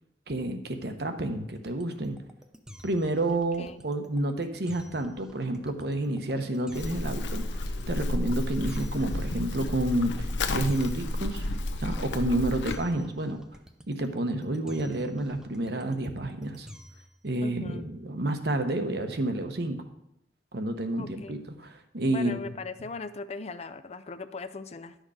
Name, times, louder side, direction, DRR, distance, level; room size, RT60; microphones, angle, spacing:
voice 1, 0.3-2.2 2.8-11.4 11.8-13.4 13.9-16.7 17.2-19.8 20.5-22.4, right 1 dB, 60° right, 7 dB, 1.0 m, -30 dB
sound 1, 1.6-17.2, equal, 5° right, 0.6 m, -50 dB
voice 2, 3.3-3.8 17.4-17.8 21.0-21.4 22.1-25.0, left 4 dB, 35° left, 12 dB, 0.5 m, -39 dB
Livestock farm animals working animals, 6.7-12.8, left 2 dB, 85° left, 0.8 m, -31 dB
11.0 x 6.4 x 4.9 m, 0.81 s
head